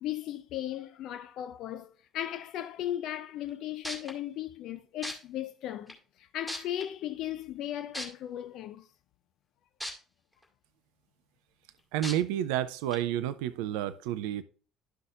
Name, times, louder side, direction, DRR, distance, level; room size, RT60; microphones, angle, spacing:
voice 1, 0.0-8.9, left 12 dB, 55° left, 0.4 m, -37 dB
sound 1, 3.5-3.6 3.8-4.1 5.0-5.1 5.9-6.0 6.5-6.8 7.9-8.1 9.8-9.9 10.4-10.5 12.0-12.1 12.9-13.0, equal, ahead, 2.0 m, -36 dB
voice 2, 11.9-14.4, right 12 dB, 65° right, 0.4 m, -30 dB
11.5 x 5.7 x 2.4 m
figure-of-eight pair, 55°, 0 cm